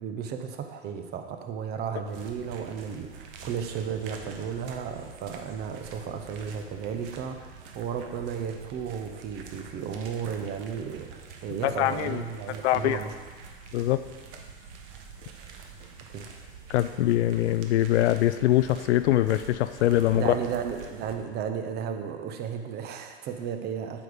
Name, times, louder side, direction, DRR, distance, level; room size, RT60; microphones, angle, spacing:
voice 1, 0.0-13.1 16.1-16.3 20.1-24.0, right 7 dB, 30° right, 6 dB, 0.7 m, -34 dB
sound 1, 2.1-21.2, right 5 dB, 55° right, 1.1 m, -46 dB
voice 2, 11.6-12.2 12.6-13.0 13.7-14.0 16.7-20.3, left 14 dB, 85° left, 13 dB, 0.5 m, -23 dB
8.5 x 5.1 x 5.1 m, 1.5 s
hypercardioid pair, 130°, 33 cm